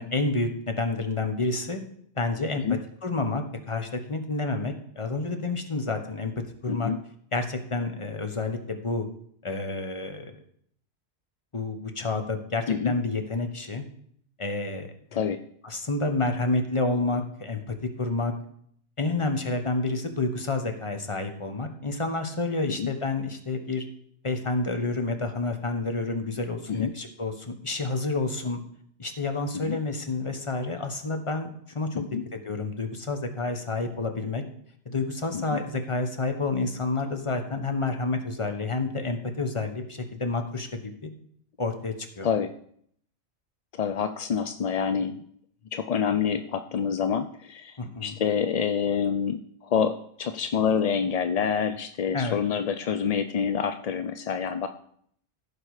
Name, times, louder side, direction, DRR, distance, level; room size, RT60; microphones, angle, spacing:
voice 1, 0.0-1.8 2.2-6.3 6.6-6.9 7.3-9.1 9.4-10.3 11.5-13.8 14.4-15.3 15.6-17.6 18.0-18.3 19.0-23.8 24.2-28.6 29.0-31.5 31.7-32.0 32.3-34.4 34.8-41.1 41.6-42.3 47.8-48.1 52.1-52.4, left 3 dB, 30° left, 6 dB, 1.1 m, -29 dB
voice 2, 6.7-7.0 12.7-12.9 15.1-15.4 22.8-22.9 26.7-26.9 29.5-29.8 31.9-32.2 35.3-35.6 42.2-42.5 43.7-45.2 45.7-54.7, left 7 dB, 55° left, 10 dB, 0.4 m, -27 dB
15.5 x 5.1 x 4.8 m, 0.66 s
omnidirectional pair, 1.1 m